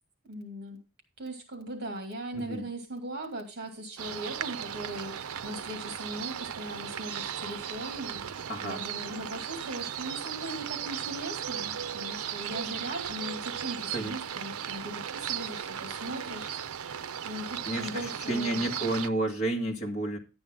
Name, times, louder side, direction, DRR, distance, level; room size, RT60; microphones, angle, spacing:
voice 1, 0.2-0.8 1.2-8.2 8.6-16.5 17.2-18.7, right 1 dB, 45° right, 5 dB, 2.3 m, -39 dB
voice 2, 2.3-2.7 8.5-8.8 13.9-14.1 17.6-20.2, right 1 dB, 35° left, 1 dB, 1.9 m, -31 dB
sound 1, 4.0-19.1, right 9 dB, 80° right, 0.5 m, -36 dB
11.0 x 8.7 x 3.7 m, 0.30 s
head